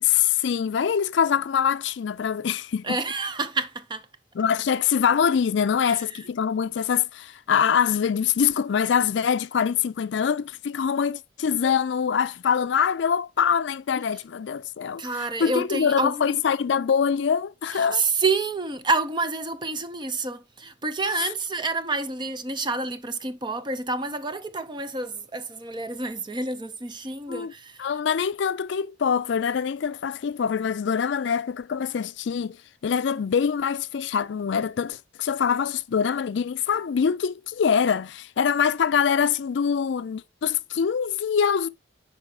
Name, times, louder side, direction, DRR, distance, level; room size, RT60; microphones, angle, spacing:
voice 1, 0.0-3.0 4.4-18.1 27.3-27.5 27.8-32.6 32.8-41.7, left 7 dB, 65° left, 0.4 m, -24 dB
voice 2, 2.8-4.1 5.8-6.3 15.0-16.4 17.7-27.9, right 3 dB, 25° right, 0.7 m, -28 dB
5.7 x 4.8 x 4.9 m
head